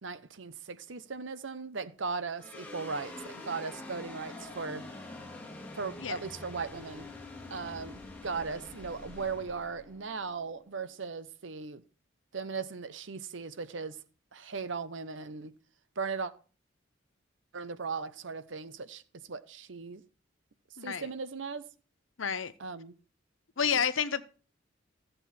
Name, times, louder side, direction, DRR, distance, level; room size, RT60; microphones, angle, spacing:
voice 1, 0.0-4.8 5.7-7.1 7.5-11.8 12.3-14.0 14.3-15.5 16.0-16.3 17.5-19.0 19.3-20.0 20.8-21.6 22.6-22.9 23.7-23.8, right 4 dB, 70° right, 0.8 m, -38 dB
sound 1, 2.4-10.9, left 2 dB, 10° left, 2.3 m, -46 dB
voice 2, 20.8-21.1 22.2-22.5 23.6-24.2, left 7 dB, 80° left, 0.8 m, -30 dB
14.0 x 7.9 x 4.3 m
head